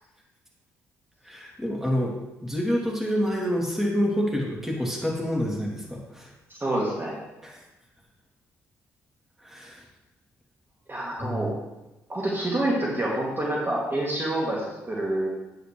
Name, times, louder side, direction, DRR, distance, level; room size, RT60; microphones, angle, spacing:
voice 1, 1.2-6.3 7.4-7.6 9.4-9.8 11.2-11.5, equal, 5° right, -3 dB, 2.9 m, -28 dB
voice 2, 6.5-7.2 10.9-11.5 12.1-15.3, right 1 dB, 30° right, -4 dB, 2.4 m, -27 dB
8.9 x 8.1 x 3.2 m, 1.0 s
hypercardioid pair, 45°, 7 cm